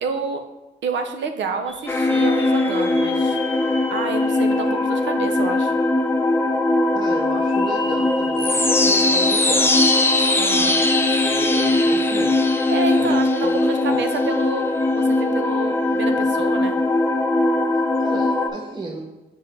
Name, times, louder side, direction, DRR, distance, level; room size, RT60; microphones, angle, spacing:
voice 1, 0.0-0.4 0.8-3.4 3.9-5.7 10.4-10.8 12.7-14.7 14.9-16.8, right 4 dB, 90° right, 6 dB, 0.7 m, -28 dB
sound 1, 1.7-5.6 6.1-6.2 7.3-12.3 12.6-12.7 14.7-14.9, left 3 dB, 30° left, 0.9 m, -38 dB
sound 2, 1.9-18.5, left 2 dB, 10° left, 0.5 m, -20 dB
voice 2, 6.9-9.8 11.2-12.5 13.0-13.5 13.9-14.0 18.0-19.0, right 3 dB, 25° right, 0 dB, 0.7 m, -33 dB
4.8 x 3.9 x 5.7 m, 1.1 s
cardioid pair, 90°, 18 cm